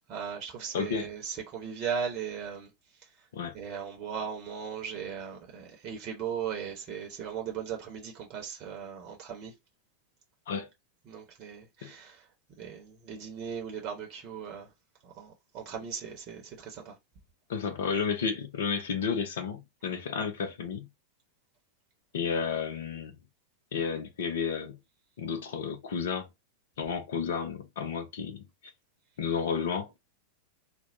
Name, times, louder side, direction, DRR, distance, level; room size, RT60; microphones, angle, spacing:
voice 1, 0.1-2.7 3.5-9.5 11.1-12.2 12.6-14.7 15.0-16.9, right 7 dB, 40° right, 1.0 m, -37 dB
voice 2, 0.7-1.1 3.3-3.6 10.5-10.7 11.8-11.9 17.5-20.8 22.1-23.1 23.7-24.8 25.2-26.3 26.8-28.4 29.2-29.9, left 6 dB, 60° left, 0.7 m, -32 dB
4.3 x 2.3 x 2.6 m
figure-of-eight pair, 90°, 0 cm